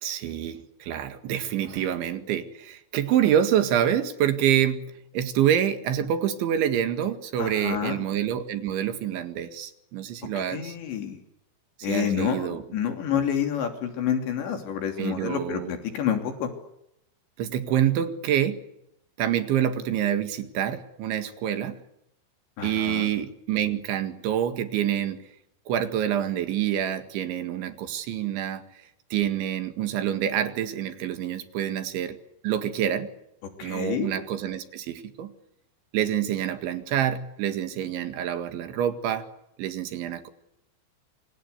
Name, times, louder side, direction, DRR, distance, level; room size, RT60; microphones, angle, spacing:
voice 1, 0.0-10.8 11.8-12.6 13.1-13.2 15.0-15.7 17.4-18.6 19.2-21.8 22.6-25.2 25.7-28.6 29.1-32.2 32.4-33.1 33.6-35.3 35.9-39.3 39.6-40.3, right 10 dB, 70° right, 9 dB, 4.1 m, -27 dB
voice 2, 7.4-8.1 10.4-11.2 11.8-16.5 22.6-23.1 33.6-34.1, left 8 dB, 60° left, 6 dB, 5.1 m, -28 dB
27.0 x 26.0 x 8.2 m, 0.81 s
omnidirectional pair, 5.8 m